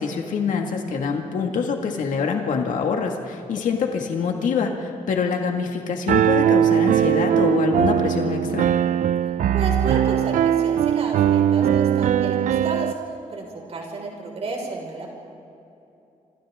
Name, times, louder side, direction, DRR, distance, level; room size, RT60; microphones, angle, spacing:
voice 1, 0.0-8.7, left 5 dB, 75° left, 2 dB, 2.0 m, -25 dB
Piano, 6.1-12.9, right 10 dB, 75° right, 0.6 m, -20 dB
voice 2, 9.5-15.1, right 3 dB, 50° right, 0 dB, 5.3 m, -32 dB
27.0 x 26.5 x 3.7 m, 2.7 s
wide cardioid pair, 170°, 13 cm